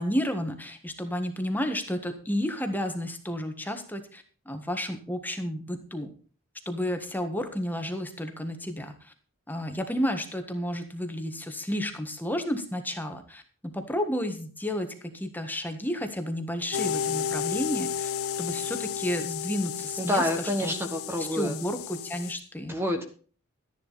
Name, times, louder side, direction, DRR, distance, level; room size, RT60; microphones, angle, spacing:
voice 1, 0.0-6.1 6.6-9.1 9.5-18.1 18.4-20.7 21.3-22.8, equal, 10° left, 6 dB, 1.6 m, -32 dB
sound 1, 16.7-22.3, left 8 dB, 70° left, 0.4 m, -32 dB
voice 2, 20.0-21.5 22.7-23.0, left 1 dB, 10° right, 5 dB, 1.4 m, -28 dB
13.5 x 10.5 x 4.1 m, 0.40 s
head